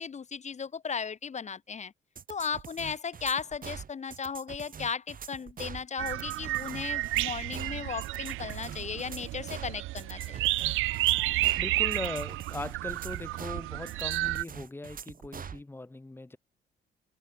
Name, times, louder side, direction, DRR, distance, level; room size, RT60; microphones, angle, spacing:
voice 1, 0.0-1.9 2.3-10.5, left 6 dB, 35° left, 1.1 m, -36 dB
sound 1, 2.2-15.6, right 7 dB, 45° right, 1.7 m, -44 dB
sound 2, 6.0-14.4, right 18 dB, 90° right, 0.7 m, -31 dB
voice 2, 11.6-16.4, left 2 dB, 10° left, 0.8 m, -39 dB
cardioid pair, 90°, 20 cm